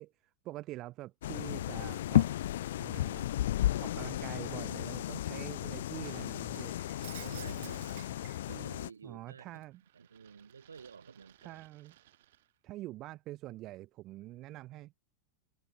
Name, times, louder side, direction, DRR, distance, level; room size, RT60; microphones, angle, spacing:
voice 1, 0.0-2.3 2.8-3.4 3.8-6.8 9.0-9.8 11.4-11.9 12.6-14.9, right 16 dB, 35° right, 1.5 m, -45 dB
sound 1, 1.2-8.9, left 13 dB, 60° left, 0.6 m, -33 dB
Shatter, 6.0-8.9 9.3-12.4, right 14 dB, 55° right, 2.1 m, -54 dB
voice 2, 7.1-9.6 9.9-11.6, right 5 dB, 75° right, 5.9 m, -51 dB
figure-of-eight pair, 90°, 0 cm